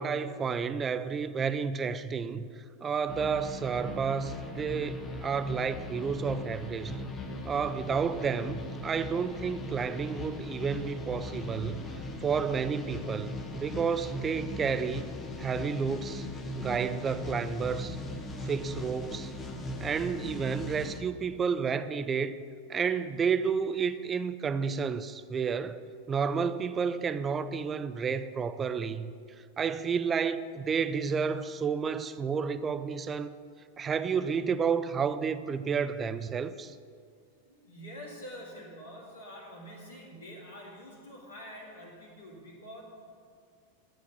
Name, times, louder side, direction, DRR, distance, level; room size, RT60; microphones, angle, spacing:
voice 1, 0.0-7.0 7.4-11.8 12.2-15.1 15.4-16.3 16.5-18.0 18.4-19.3 19.8-22.4 22.7-29.1 29.6-33.3 33.8-36.8, right 6 dB, 20° right, 0.5 m, -31 dB
sound 1, 3.1-21.0, left 2 dB, 25° left, 1.3 m, -39 dB
voice 2, 37.5-42.8, equal, 75° left, 2.4 m, -46 dB
10.5 x 7.7 x 6.8 m
figure-of-eight pair, 90°, 0 cm